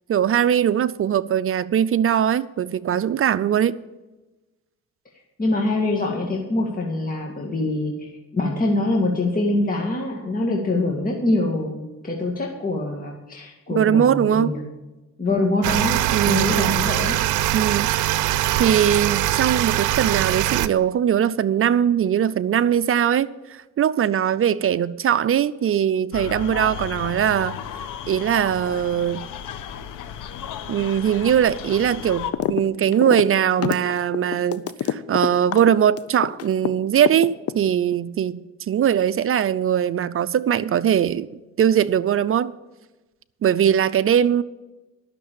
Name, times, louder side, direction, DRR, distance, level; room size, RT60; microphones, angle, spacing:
voice 1, 0.1-3.8 13.7-14.6 16.1-16.8 17.5-17.9 18.6-27.6 28.1-29.3 30.7-38.4 38.7-41.3 41.6-42.5 43.4-44.4, right 9 dB, 45° right, 0.5 m, -21 dB
voice 2, 5.4-14.6 15.2-16.0 16.3-17.2, left 2 dB, 30° left, 2.2 m, -24 dB
sound 1, 15.6-20.7, right 14 dB, 85° right, 0.6 m, -22 dB
sound 2, 26.1-32.3, left 9 dB, 90° left, 1.0 m, -34 dB
sound 3, 32.3-32.6 32.9-36.7 37.1-37.9, left 10 dB, 50° left, 0.7 m, -26 dB
12.0 x 6.7 x 8.7 m
cardioid pair, 90°, 30 cm